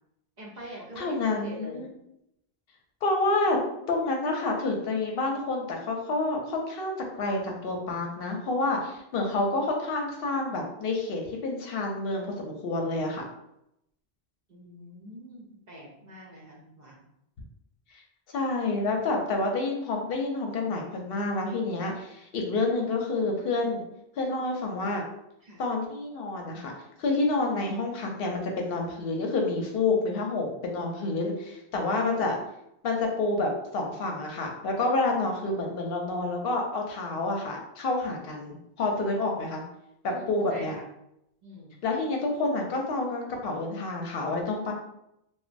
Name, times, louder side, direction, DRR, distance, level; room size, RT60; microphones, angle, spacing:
voice 1, 0.4-1.9 14.5-17.0 25.4-25.6 40.1-40.9 41.4-41.8, right 1 dB, 50° right, -4 dB, 0.7 m, -45 dB
voice 2, 1.0-1.9 3.0-3.6 3.9-13.3 17.9-18.0 18.3-23.8 24.2-25.0 25.6-26.7 27.0-32.4 32.8-39.6 40.0-40.7 41.8-44.7, left 2 dB, 70° left, 1 dB, 0.7 m, -28 dB
2.9 x 2.2 x 2.5 m, 0.81 s
omnidirectional pair, 1.0 m